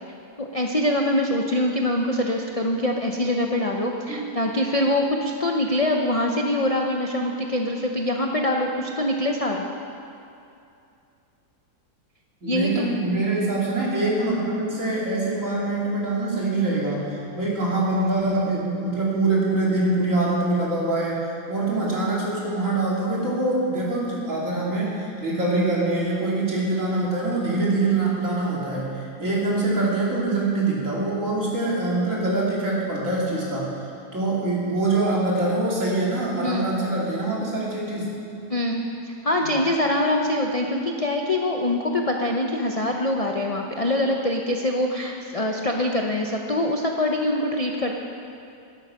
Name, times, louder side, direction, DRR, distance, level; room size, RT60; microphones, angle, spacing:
voice 1, 0.4-9.6 12.5-12.9 36.4-36.7 38.5-47.9, left 1 dB, 35° left, 1 dB, 0.5 m, -24 dB
voice 2, 4.1-4.4 12.4-33.7 34.1-38.1 39.4-39.6, right 2 dB, 50° right, -6 dB, 3.3 m, -24 dB
13.5 x 11.5 x 5.8 m, 2.6 s
omnidirectional pair, 1.7 m